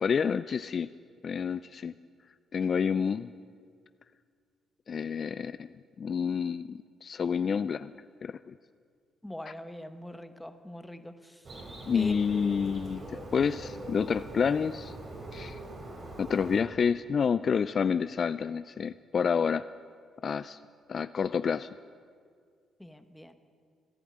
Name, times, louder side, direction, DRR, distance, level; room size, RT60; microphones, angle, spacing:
voice 1, 0.0-0.9 1.2-1.9 2.5-3.3 4.9-5.7 6.0-7.9 8.2-8.5 9.5-9.6 11.9-14.9 15.3-15.6 16.2-19.7 20.2-20.6 20.9-21.7, left 6 dB, 45° left, 14 dB, 0.3 m, -29 dB
voice 2, 9.2-11.1 11.9-12.6 22.8-23.3, equal, 5° left, 9 dB, 1.0 m, -42 dB
Bird, 11.4-16.6, right 1 dB, 45° right, 3.5 m, -42 dB
15.5 x 11.0 x 8.7 m, 2.1 s
cardioid pair, 90°, 0 cm